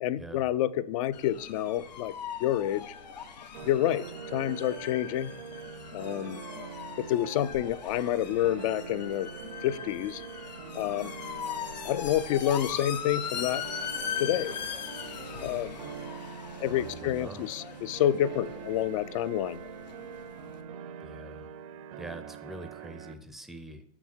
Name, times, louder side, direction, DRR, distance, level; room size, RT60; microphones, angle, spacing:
voice 1, 0.0-2.1 2.4-2.9 3.6-4.1 4.3-5.3 5.9-6.4 7.0-9.3 9.6-10.2 10.8-11.1 11.8-13.6 14.2-14.6 15.4-15.7 16.6-19.6, left 12 dB, 55° left, 16 dB, 0.4 m, -28 dB
sound 1, 1.1-20.6, left 7 dB, 90° left, 1.1 m, -40 dB
sound 2, 3.5-23.1, right 7 dB, 60° right, 0.7 m, -44 dB
voice 2, 16.6-17.5 21.0-21.5 22.0-23.8, right 1 dB, ahead, 8 dB, 0.5 m, -44 dB
7.2 x 6.0 x 4.4 m, 0.75 s
hypercardioid pair, 130°, 21 cm